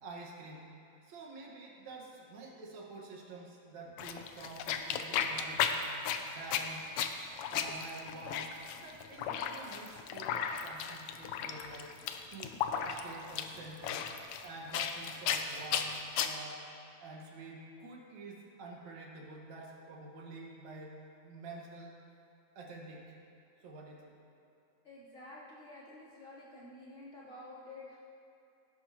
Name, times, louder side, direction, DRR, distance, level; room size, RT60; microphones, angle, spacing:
voice 1, 0.0-0.7 1.0-5.9 6.2-6.9 7.5-11.9 12.3-12.6 12.8-14.0 14.4-16.7 17.0-21.0 21.2-21.9 22.6-23.2 23.6-24.1, right 2 dB, 70° right, -2 dB, 2.8 m, -48 dB
sound 1, 4.0-16.3, left 8 dB, 85° left, 1.3 m, -35 dB
voice 2, 24.8-28.0, left 2 dB, 25° left, -9 dB, 3.3 m, -50 dB
18.0 x 11.0 x 2.9 m, 2.7 s
omnidirectional pair, 3.3 m